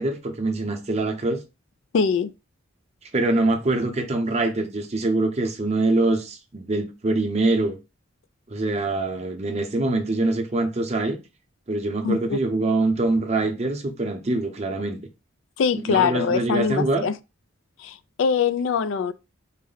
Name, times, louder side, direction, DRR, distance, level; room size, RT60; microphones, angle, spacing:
voice 1, 0.0-1.4 3.1-7.8 8.5-11.2 11.7-15.0 15.7-17.1, right 2 dB, 35° right, 0.7 m, -24 dB
voice 2, 1.9-2.3 12.0-12.4 15.6-17.2 17.8-19.1, left 6 dB, 70° left, 0.3 m, -23 dB
3.9 x 2.1 x 3.9 m
head